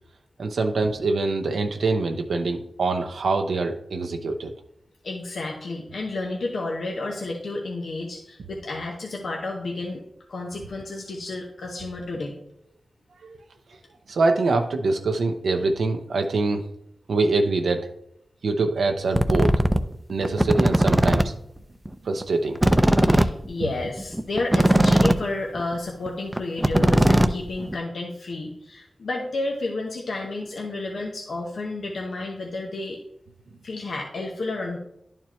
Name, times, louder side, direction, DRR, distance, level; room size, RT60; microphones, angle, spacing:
voice 1, 0.4-4.5 13.2-13.4 14.1-16.7 17.1-17.9 18.4-19.5 20.1-21.3 22.0-22.6, right 3 dB, 85° right, 4 dB, 0.6 m, -24 dB
voice 2, 5.0-10.0 10.3-12.4 23.1-33.0 33.6-34.8, left 2 dB, 75° left, 0 dB, 0.9 m, -31 dB
sound 1, 19.1-19.8 20.2-21.2 21.6-21.7 21.9-22.0 22.2-22.3 22.6-25.2 25.6-25.7 26.1-26.2 26.3-27.7, right 1 dB, 15° right, 0.6 m, -18 dB
10.5 x 4.5 x 3.0 m, 0.77 s
cardioid pair, 45°, 0 cm